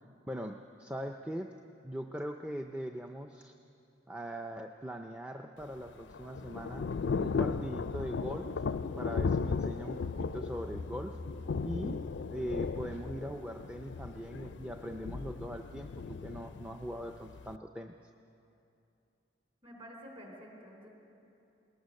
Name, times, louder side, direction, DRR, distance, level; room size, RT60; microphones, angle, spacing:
voice 1, 0.0-1.6 1.8-3.6 4.1-6.8 7.2-8.6 9.0-11.2 11.6-17.9, equal, 5° right, 4 dB, 0.5 m, -41 dB
Thunder / Rain, 5.6-17.6, left 5 dB, 75° left, 0.4 m, -36 dB
Musical instrument, 9.9-13.5, left 1 dB, 50° right, 1.3 m, -47 dB
voice 2, 19.6-20.9, equal, 30° right, 1 dB, 3.7 m, -49 dB
21.0 x 19.0 x 6.5 m, 2.8 s
head